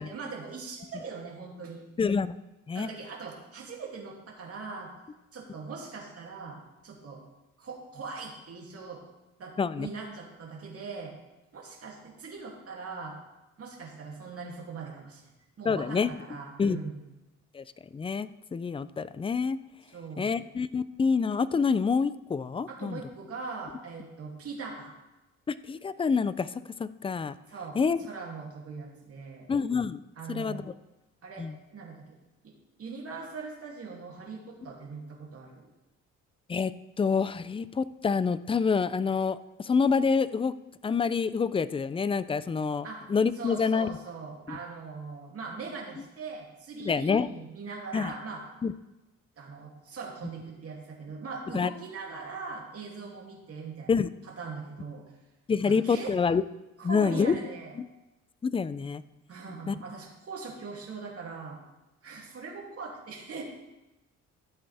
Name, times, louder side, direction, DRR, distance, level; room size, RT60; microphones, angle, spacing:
voice 1, 0.0-1.9 2.7-4.9 5.3-6.6 6.8-7.2 7.6-9.0 9.4-11.1 11.5-13.2 13.6-15.3 15.6-17.0 19.9-20.4 22.7-25.0 27.5-29.5 30.2-30.6 31.2-32.0 32.4-35.7 42.8-43.1 43.4-48.4 49.4-53.9 54.2-55.0 55.6-56.1 56.8-57.8 59.3-61.6 62.0-63.4, right 4 dB, 50° right, -2 dB, 2.7 m, -41 dB
voice 2, 2.0-2.4 2.7-2.9 9.6-9.9 15.6-16.1 16.6-16.8 17.5-17.6 17.9-19.6 20.2-23.0 25.5-26.5 26.8-27.3 27.8-28.0 29.5-30.0 30.3-30.7 31.4-31.6 36.5-36.7 37.0-40.5 40.8-43.9 44.5-44.6 46.8-47.3 47.9-48.1 48.6-48.7 51.5-51.7 53.9-54.1 55.5-56.4 56.8-57.3 58.4-59.0 59.7-59.8, left 5 dB, 20° left, 15 dB, 0.4 m, -27 dB
13.5 x 7.8 x 3.5 m, 1.0 s
cardioid pair, 90°, 30 cm